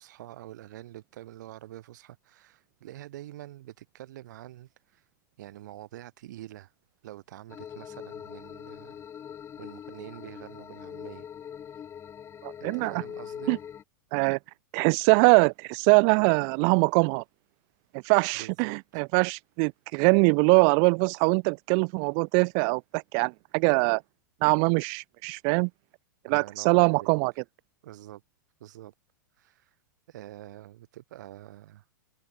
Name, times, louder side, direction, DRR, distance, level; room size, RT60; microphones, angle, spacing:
voice 1, 0.0-5.1 5.4-6.7 7.0-9.0 9.6-11.3 11.7-11.9 12.6-13.6 18.4-19.0 26.3-27.4 27.8-28.2 28.6-28.9 29.3-29.8 30.1-31.9, right 14 dB, 60° right, 3.4 m, -46 dB
sound 1, 7.5-13.8, left 8 dB, 25° left, 4.5 m, -42 dB
voice 2, 12.4-12.9 13.5-13.6 14.1-14.4 14.7-17.2 18.0-24.0 24.4-25.7 26.3-27.3, right 40 dB or more, 40° right, 0.4 m, -23 dB
figure-of-eight pair, 100°, 11 cm